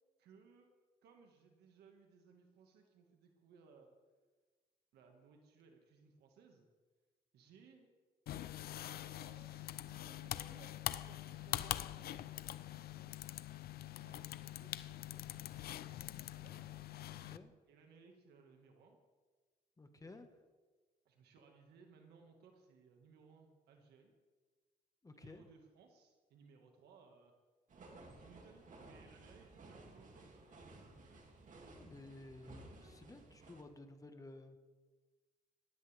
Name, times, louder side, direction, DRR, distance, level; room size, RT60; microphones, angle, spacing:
voice 1, 0.2-0.7 1.0-4.0 4.9-6.7 7.3-7.9 8.9-12.3 12.6-13.2 13.9-15.7 16.3-16.7 17.7-19.0 19.9-20.2 21.1-24.1 25.1-27.3 28.0-30.4, right 5 dB, 90° right, 3 dB, 1.8 m, -63 dB
sound 1, 8.3-17.4, left 13 dB, 70° left, 0.6 m, -44 dB
voice 2, 17.1-17.5 19.8-20.3 25.0-25.5 31.7-34.6, left 2 dB, 20° left, 7 dB, 1.4 m, -54 dB
sound 2, 27.7-33.6, right 2 dB, 50° right, 2.5 m, -57 dB
18.5 x 14.5 x 3.5 m, 1.4 s
cardioid pair, 95°, 16 cm